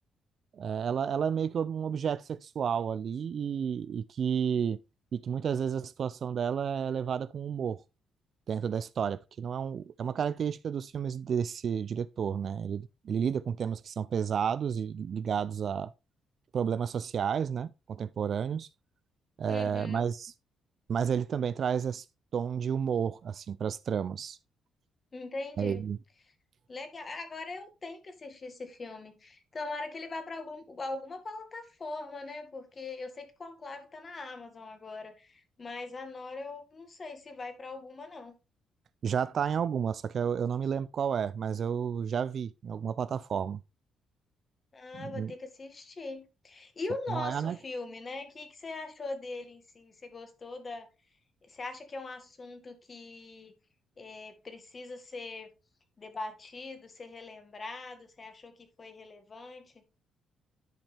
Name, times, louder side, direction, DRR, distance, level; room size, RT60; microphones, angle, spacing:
voice 1, 0.5-4.8 5.1-7.8 8.5-15.9 16.5-18.7 19.4-20.3 20.9-22.1 22.3-24.4 25.6-26.0 39.0-43.6 44.9-45.3 47.1-47.6, right 7 dB, 55° right, 0.3 m, -31 dB
voice 2, 19.5-20.1 25.1-25.8 26.7-38.4 44.7-50.9 51.4-53.6 54.0-55.5 56.0-59.7, left 3 dB, 35° left, 1.9 m, -41 dB
10.5 x 5.3 x 3.3 m
cardioid pair, 90°, 0 cm